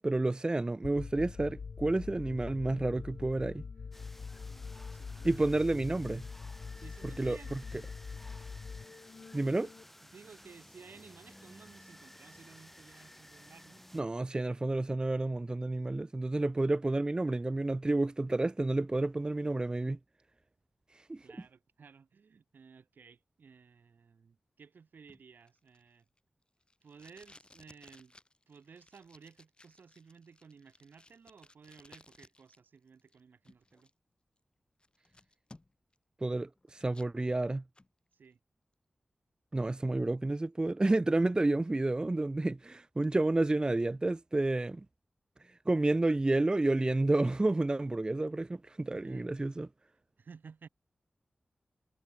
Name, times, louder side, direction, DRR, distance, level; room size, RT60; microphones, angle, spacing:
voice 1, 0.0-3.6 5.2-6.2 7.2-7.6 9.3-9.7 13.9-20.0 21.1-21.2 36.2-37.6 39.5-44.8 45.7-49.7, right 2 dB, 25° right, 0.4 m, -30 dB
sound 1, 0.8-9.8, left 5 dB, 70° left, 1.3 m, -44 dB
sound 2, 3.9-14.0, equal, 5° left, 4.6 m, -55 dB
voice 2, 4.5-5.5 6.8-7.6 9.6-9.7 10.0-13.8 21.2-26.1 26.8-28.2 28.5-33.9 38.1-38.4 49.0-49.3 50.2-50.7, right 5 dB, 80° right, 3.8 m, -56 dB
Packing tape duct tape, 25.1-32.6 32.9-33.9 34.4-34.5 34.8-36.0 36.3-37.1 37.5-37.9, left 2 dB, 30° left, 3.7 m, -60 dB
cardioid pair, 55°, 3 cm